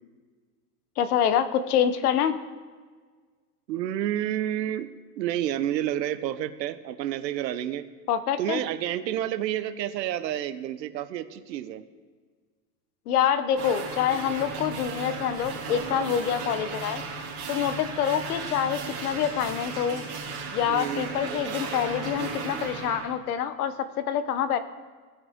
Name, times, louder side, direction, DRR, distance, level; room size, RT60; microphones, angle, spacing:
voice 1, 1.0-2.4 8.1-8.6 13.1-17.0 17.5-20.0 20.5-24.6, left 9 dB, 65° left, 12 dB, 0.8 m, -26 dB
voice 2, 3.7-4.9 5.2-7.9 8.4-11.8 20.7-21.1, right 12 dB, 90° right, 12 dB, 0.9 m, -29 dB
sound 1, 13.6-23.1, right 4 dB, 60° right, 2.8 m, -35 dB
17.0 x 5.8 x 3.6 m, 1.5 s
supercardioid pair, 170°, 49 cm